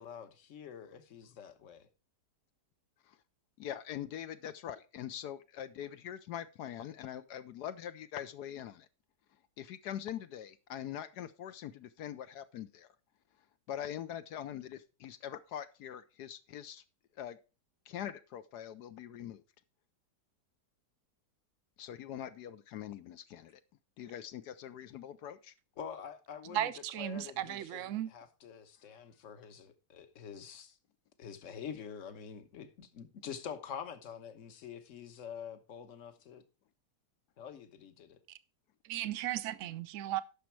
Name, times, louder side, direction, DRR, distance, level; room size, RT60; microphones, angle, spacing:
voice 1, 0.0-1.9 25.8-30.8 31.2-36.4 37.4-38.2, left 7 dB, 50° left, 1.3 m, -46 dB
voice 2, 3.6-8.9 9.6-12.9 13.7-16.8 17.2-17.4 17.9-19.4 21.8-23.6 24.0-25.5, left 10 dB, 75° left, 1.2 m, -43 dB
voice 3, 26.5-28.1 38.8-40.2, right 12 dB, 60° right, 0.9 m, -36 dB
10.5 x 6.4 x 4.5 m
omnidirectional pair, 1.8 m